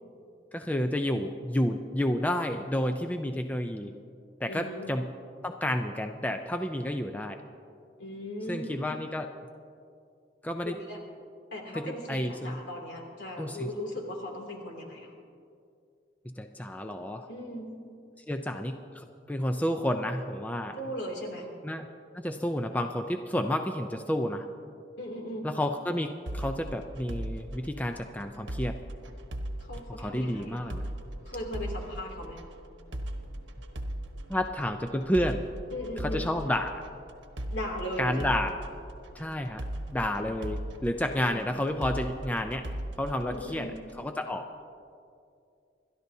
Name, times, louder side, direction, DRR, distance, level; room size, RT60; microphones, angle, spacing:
voice 1, 0.5-3.9 4.4-5.1 5.4-7.4 8.5-9.3 10.4-10.7 11.7-12.6 13.4-13.7 16.2-17.3 18.2-20.8 21.6-21.9 22.1-24.5 25.4-28.8 29.9-30.8 34.3-35.4 36.0-36.8 38.0-38.6 39.1-39.6 39.9-42.7 43.0-43.7 44.0-44.5, left 1 dB, 10° left, 6 dB, 0.5 m, -30 dB
voice 2, 4.5-4.9 8.0-8.8 10.6-11.0 11.5-15.1 17.3-17.7 20.7-21.5 25.0-25.5 29.6-30.8 31.2-32.4 35.7-36.3 37.5-38.4 41.1-41.4 43.2-43.8, left 1 dB, 70° left, 0 dB, 2.7 m, -38 dB
sound 1, 26.3-44.0, right 1 dB, 85° right, 1.2 m, -39 dB
28.0 x 13.0 x 2.8 m, 2.4 s
head